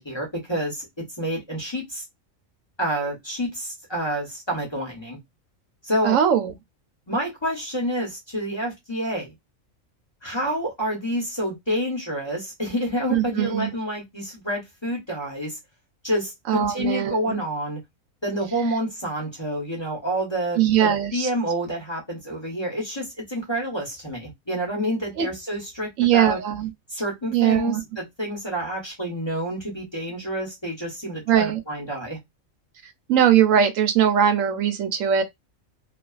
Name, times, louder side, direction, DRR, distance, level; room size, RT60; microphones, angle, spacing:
voice 1, 0.0-2.0 2.8-5.2 5.8-6.2 7.1-9.3 10.2-15.6 16.0-17.8 18.2-26.4 26.9-32.2, equal, 25° left, 0.7 m, -28 dB
voice 2, 6.0-6.5 13.1-13.7 16.5-17.4 20.6-21.3 25.2-25.3 26.0-26.7 27.3-27.8 31.3-31.6 33.1-35.2, right 9 dB, 75° right, 0.9 m, -20 dB
2.4 x 2.3 x 2.3 m
omnidirectional pair, 1.4 m